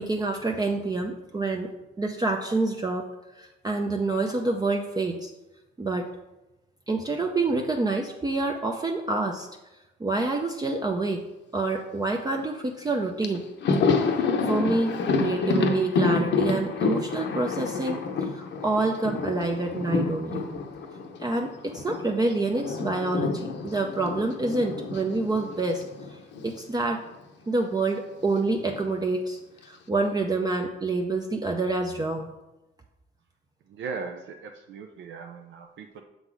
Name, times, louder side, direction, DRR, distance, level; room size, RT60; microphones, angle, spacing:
voice 1, 0.0-1.7 2.0-3.1 3.4-5.3 5.8-6.1 6.9-9.5 10.0-11.2 11.5-13.5 14.4-14.9 15.2-20.5 21.2-25.8 26.4-27.0 27.5-29.4 29.6-32.3, right 3 dB, 20° right, 2 dB, 0.5 m, -27 dB
Thunder, 12.9-13.0 13.2-22.0 22.3-26.6 26.9-27.0 28.2-28.9, left 4 dB, 65° left, 0.8 m, -28 dB
voice 2, 33.7-36.0, right 5 dB, 70° right, 4 dB, 0.6 m, -38 dB
6.7 x 4.0 x 4.7 m, 0.99 s
cardioid pair, 90°, 20 cm